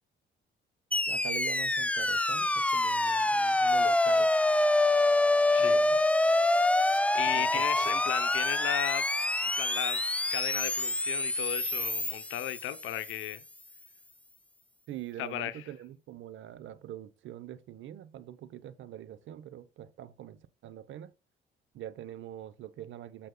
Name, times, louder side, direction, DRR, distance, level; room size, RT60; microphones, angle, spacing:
sound 1, 0.9-13.2, left 2 dB, 5° left, 0.4 m, -26 dB
voice 1, 1.1-4.3 5.6-6.0 7.3-7.9 14.9-21.1 21.7-23.3, right 11 dB, 75° right, 0.8 m, -44 dB
voice 2, 5.5-5.9 7.0-9.1 9.4-10.0 10.3-13.4 15.2-15.6, left 13 dB, 90° left, 0.8 m, -35 dB
14.5 x 5.4 x 2.2 m
cardioid pair, 90°, 20 cm